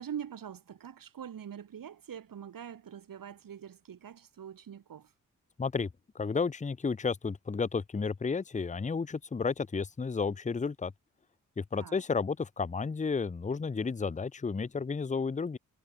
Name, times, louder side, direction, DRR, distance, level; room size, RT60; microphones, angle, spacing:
voice 1, 0.0-5.1 11.7-12.0, right 8 dB, 80° right, 5.9 m, -44 dB
voice 2, 5.6-5.9 6.1-10.9 11.6-15.6, left 5 dB, 20° left, 0.7 m, -32 dB
cardioid pair, 45°, 33 cm